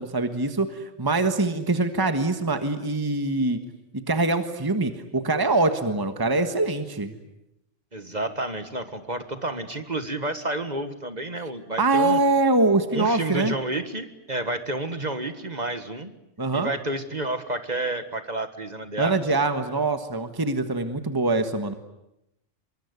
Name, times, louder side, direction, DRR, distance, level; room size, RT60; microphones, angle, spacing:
voice 1, 0.0-3.6 3.9-7.1 11.8-13.5 16.4-16.7 19.0-21.7, right 2 dB, 20° right, 8 dB, 1.5 m, -24 dB
voice 2, 7.9-12.2 12.9-16.1 16.5-19.2, right 2 dB, 35° right, 9 dB, 1.8 m, -30 dB
25.0 x 23.0 x 9.6 m, 0.86 s
omnidirectional pair, 1.3 m